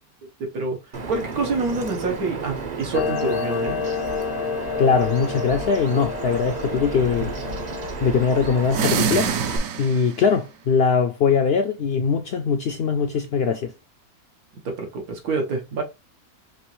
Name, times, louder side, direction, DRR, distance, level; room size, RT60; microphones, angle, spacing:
voice 1, 0.4-0.8 1.1-3.8 14.7-15.8, right 3 dB, 90° right, 1.7 m, -27 dB
Bird vocalization bird call bird song, 0.9-9.6, right 4 dB, 45° right, 0.6 m, -33 dB
Clock, 2.9-7.9, left 6 dB, 85° left, 1.1 m, -29 dB
voice 2, 4.8-7.3 8.0-9.3 9.8-13.7, left 6 dB, 70° left, 0.5 m, -21 dB
sound 1, 8.6-10.3, right 6 dB, 70° right, 1.0 m, -25 dB
5.2 x 3.0 x 3.1 m
omnidirectional pair, 1.5 m